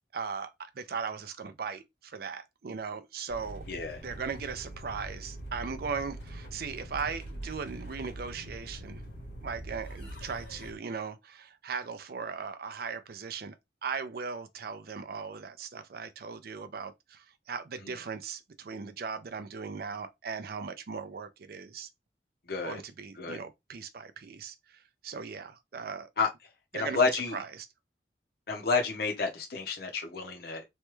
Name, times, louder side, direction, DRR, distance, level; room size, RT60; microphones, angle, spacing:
voice 1, 0.1-3.6 4.0-9.0 9.4-13.5 13.8-21.9 22.6-26.1 26.7-27.7, right 5 dB, 55° right, 0.5 m, -38 dB
sound 1, 3.3-10.8, right 1 dB, 75° left, 1.4 m, -43 dB
voice 2, 3.7-4.0 17.8-18.0 22.5-22.8 23.2-23.4 26.2-26.3 26.7-27.4 28.5-30.6, left 4 dB, 60° left, 0.8 m, -30 dB
3.2 x 2.2 x 3.0 m
head